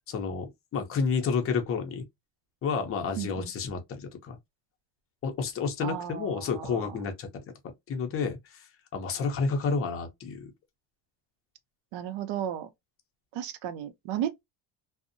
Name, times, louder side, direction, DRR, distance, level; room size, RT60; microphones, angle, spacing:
voice 1, 0.1-2.0 2.6-4.4 5.2-7.4 7.9-8.7 8.9-10.5, left 5 dB, 30° left, 0.5 m, -30 dB
voice 2, 3.2-3.5 5.8-7.0 11.9-12.7 13.3-14.4, right 10 dB, 70° right, 0.6 m, -34 dB
2.6 x 2.0 x 2.5 m
cardioid pair, 145°, 45 cm